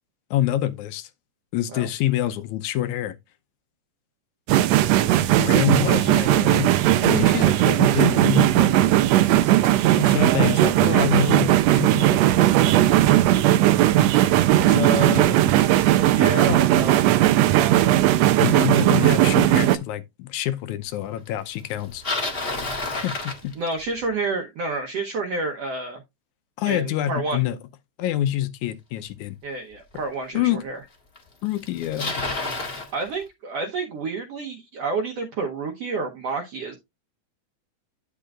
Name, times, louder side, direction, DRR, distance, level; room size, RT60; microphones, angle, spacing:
voice 1, 0.3-1.1 1.5-3.2 5.4-6.7 7.0-8.7 9.9-12.2 14.7-15.3 16.5-16.6 18.4-22.0 23.0-23.5 26.6-27.6 28.0-29.4 30.3-30.6 31.4-32.1, left 13 dB, 75° left, 2.0 m, -26 dB
sound 1, 4.5-19.8, right 13 dB, 85° right, 1.5 m, -18 dB
voice 2, 14.6-15.4 16.0-17.0 23.6-26.0 26.7-27.4 29.4-30.8 32.9-36.8, right 3 dB, 65° right, 1.8 m, -29 dB
Bicycle, 21.7-24.0 29.1-29.2 30.0-30.1 31.2-31.3 31.5-32.9, left 2 dB, 40° left, 0.8 m, -29 dB
10.0 x 6.8 x 2.4 m
omnidirectional pair, 3.7 m